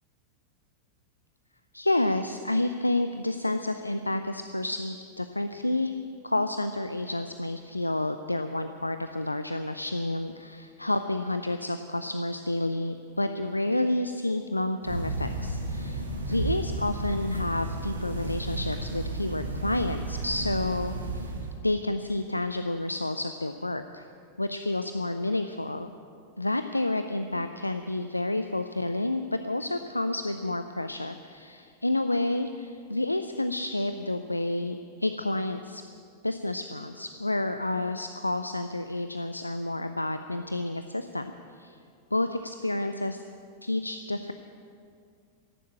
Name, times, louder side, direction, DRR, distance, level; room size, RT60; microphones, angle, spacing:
voice 1, 1.7-5.9 6.2-21.3 21.6-24.1 24.4-25.9 26.4-35.8 36.2-41.8 42.1-43.2 43.6-44.3, left 2 dB, 85° left, 9 dB, 0.5 m, -30 dB
sound 1, 14.8-21.5, right 2 dB, 75° right, 2.0 m, -33 dB
14.0 x 11.0 x 8.7 m, 2.3 s
figure-of-eight pair, 90°, 0 cm